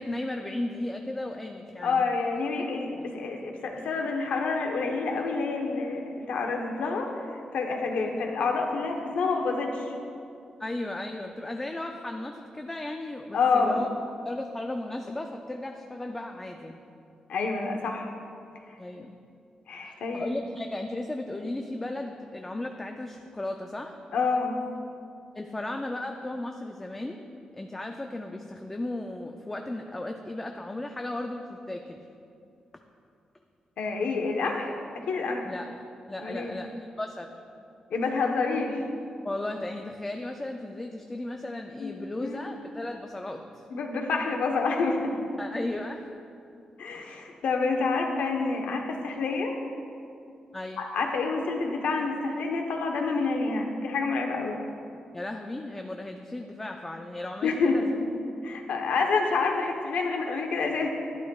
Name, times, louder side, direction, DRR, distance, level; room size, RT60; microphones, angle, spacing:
voice 1, 0.0-2.1 10.6-13.9 14.2-16.8 18.8-19.2 19.8-24.0 25.3-27.3 27.5-32.0 35.4-35.7 36.1-36.7 37.0-37.3 39.2-43.6 45.4-46.2 50.5-50.8 55.1-57.8, left 1 dB, 15° left, 3 dB, 0.4 m, -35 dB
voice 2, 1.8-9.9 13.3-13.8 17.3-18.1 19.7-20.4 24.1-24.6 33.8-35.5 36.2-36.5 37.9-38.8 41.8-42.6 43.7-45.2 46.8-49.6 50.8-54.6 57.4-60.9, left 4 dB, 85° left, 2 dB, 1.0 m, -28 dB
11.5 x 11.0 x 2.3 m, 2.5 s
wide cardioid pair, 170°, 2 cm